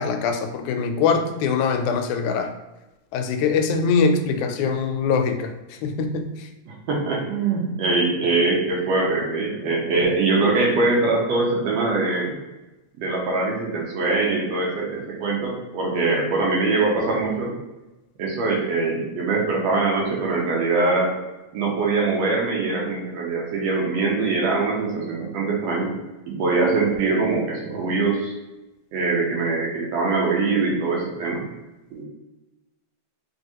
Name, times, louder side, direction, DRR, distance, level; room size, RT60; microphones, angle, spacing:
voice 1, 0.0-2.5 3.1-5.4 5.8-6.3, left 5 dB, 90° left, 6 dB, 2.0 m, -22 dB
voice 2, 6.7-12.4 13.0-17.5 18.2-21.1 21.5-25.9 26.3-28.3 28.9-31.4 31.9-32.0, right 3 dB, 75° right, -2 dB, 1.8 m, -23 dB
4.6 x 3.2 x 2.9 m, 1.1 s
omnidirectional pair, 3.3 m